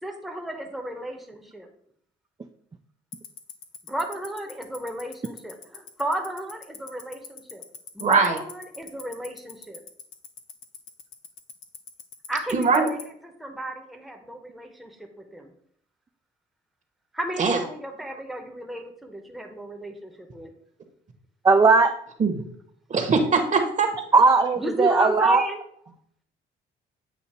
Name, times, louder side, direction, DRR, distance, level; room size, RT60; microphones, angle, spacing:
voice 1, 0.0-1.7 3.9-7.6 7.9-9.8 12.3-15.5 17.1-20.5 24.6-25.6, right 1 dB, ahead, 2 dB, 0.9 m, -33 dB
Tick-tock, 3.1-13.0, left 10 dB, 80° left, 0.8 m, -39 dB
voice 2, 8.0-8.4 12.5-12.9 17.4-17.6 22.2-22.4 22.9-23.9, right 4 dB, 40° right, 4 dB, 1.1 m, -21 dB
voice 3, 21.4-21.9 24.1-25.4, right 4 dB, 20° right, 5 dB, 0.4 m, -17 dB
8.2 x 2.8 x 4.2 m, 0.65 s
cardioid pair, 90°, 20 cm